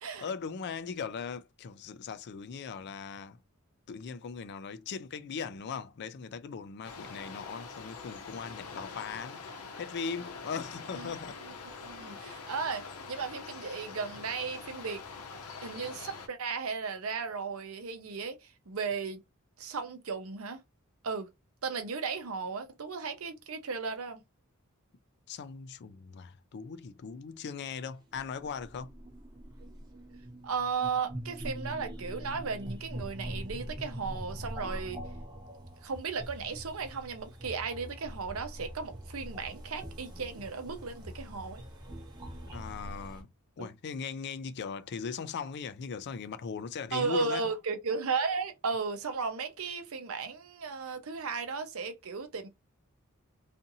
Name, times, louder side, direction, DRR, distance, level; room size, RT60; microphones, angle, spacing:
voice 1, 0.2-3.4 3.9-9.4 9.8-11.4 25.3-28.9 42.5-43.3 43.6-47.5, left 6 dB, 50° left, 0.4 m, -39 dB
sound 1, 6.8-16.3, left 4 dB, 90° left, 0.7 m, -44 dB
voice 2, 11.8-15.0 15.6-19.2 19.6-20.6 21.0-21.3 21.6-24.2 30.4-35.0 35.8-41.6 43.6-43.7 46.9-52.5, right 5 dB, 70° right, 0.7 m, -35 dB
sound 2, 27.8-43.2, equal, 20° right, 0.8 m, -43 dB
2.6 x 2.5 x 2.6 m
head